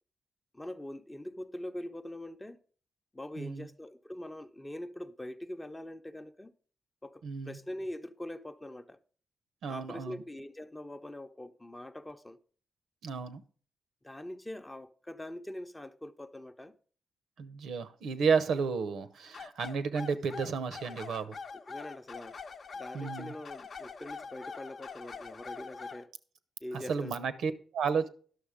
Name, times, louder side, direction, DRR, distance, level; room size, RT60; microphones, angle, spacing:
voice 1, 0.5-2.6 3.1-6.5 7.0-9.0 9.7-12.4 14.0-16.8 21.7-22.4 22.7-26.1 26.6-27.2, left 1 dB, 15° left, 0.6 m, -43 dB
voice 2, 3.4-3.7 7.2-7.6 9.6-10.2 13.0-13.4 17.4-21.4 22.9-23.3 26.7-28.1, right 5 dB, 85° right, 0.8 m, -32 dB
sound 1, 19.3-26.1, left 5 dB, 50° left, 0.7 m, -44 dB
11.0 x 6.4 x 5.0 m
cardioid pair, 110°, 0 cm